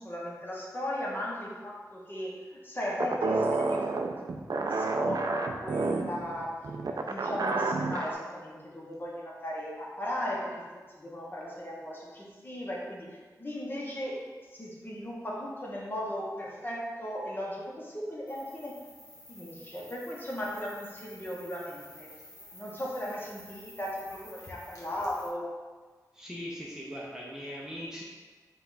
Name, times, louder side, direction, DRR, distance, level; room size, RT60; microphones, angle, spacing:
voice 1, 0.0-4.2 4.5-13.1 13.4-14.2 14.5-18.8 19.3-22.1 22.5-25.5, equal, 30° left, -4 dB, 1.0 m, -37 dB
sound 1, 3.0-8.1, right 3 dB, 65° right, 0.3 m, -30 dB
sound 2, 18.3-25.3, left 1 dB, 50° left, 1.3 m, -51 dB
voice 2, 26.1-28.0, equal, 10° right, -5 dB, 0.7 m, -40 dB
5.2 x 2.4 x 4.0 m, 1.4 s
wide cardioid pair, 85°, 7 cm